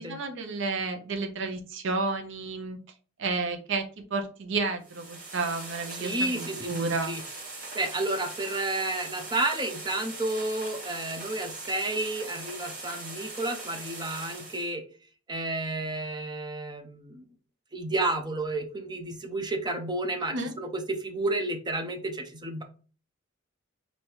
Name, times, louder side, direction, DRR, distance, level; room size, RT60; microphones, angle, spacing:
voice 1, 0.0-2.8 3.2-7.1 20.3-20.5, right 3 dB, 65° right, 6 dB, 0.7 m, -31 dB
sound 1, 4.8-14.7, right 3 dB, 40° right, 1.8 m, -41 dB
voice 2, 6.0-7.2 7.7-14.8 15.3-17.2 17.7-22.6, right 2 dB, 20° right, 5 dB, 0.7 m, -31 dB
3.3 x 2.8 x 4.5 m, 0.39 s
head